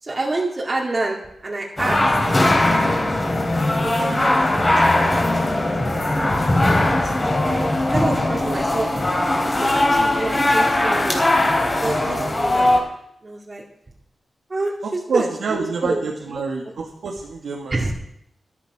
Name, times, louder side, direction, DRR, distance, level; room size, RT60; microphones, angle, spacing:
voice 1, 0.0-2.2 3.8-5.1 5.4-8.9 9.4-11.2 11.7-12.7 13.2-13.6 14.5-16.0 17.7-17.9, right 2 dB, 30° right, -3 dB, 2.3 m, -28 dB
sound 1, 1.8-12.8, left 1 dB, 25° left, 3.6 m, -19 dB
voice 2, 14.8-17.9, right 4 dB, 85° right, -1 dB, 2.0 m, -27 dB
13.5 x 13.0 x 4.9 m, 0.76 s
wide cardioid pair, 115°, 0 cm